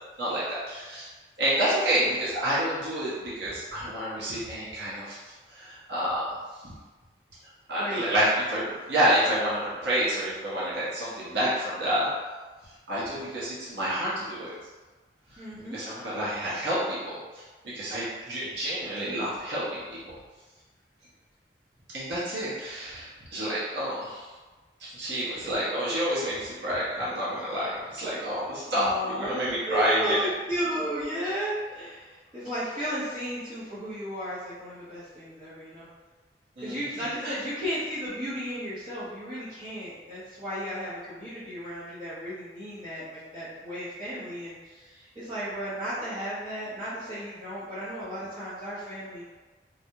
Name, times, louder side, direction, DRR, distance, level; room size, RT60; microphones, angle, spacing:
voice 1, 0.2-1.1 1.4-5.2 5.5-6.3 6.6-6.7 7.7-12.1 12.9-14.5 15.3-20.1 21.9-24.3 24.8-30.2 36.6-37.3, right 1 dB, 80° right, -9 dB, 0.7 m, -29 dB
voice 2, 7.8-8.1 15.4-15.9 28.6-29.4 29.6-35.9 36.6-49.2, equal, 30° right, -13 dB, 0.6 m, -34 dB
2.2 x 2.0 x 2.7 m, 1.3 s
head